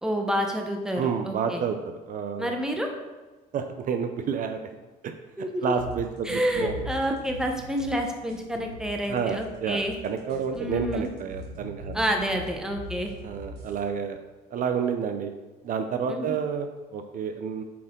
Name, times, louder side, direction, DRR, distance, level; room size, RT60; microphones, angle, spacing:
voice 1, 0.0-1.6 2.4-2.9 5.4-5.7 6.2-10.0 10.5-11.1 11.9-13.1 16.1-16.4, equal, 5° right, 3 dB, 1.0 m, -28 dB
voice 2, 1.0-1.8 2.1-2.5 3.5-4.7 5.0-5.1 5.6-6.8 9.1-12.0 13.2-14.2 14.5-15.3 15.6-17.6, right 7 dB, 55° right, 7 dB, 0.5 m, -29 dB
sound 1, 5.8-13.8, equal, 80° right, 2.0 m, -40 dB
8.3 x 4.3 x 3.7 m, 1.2 s
cardioid pair, 110°, 17 cm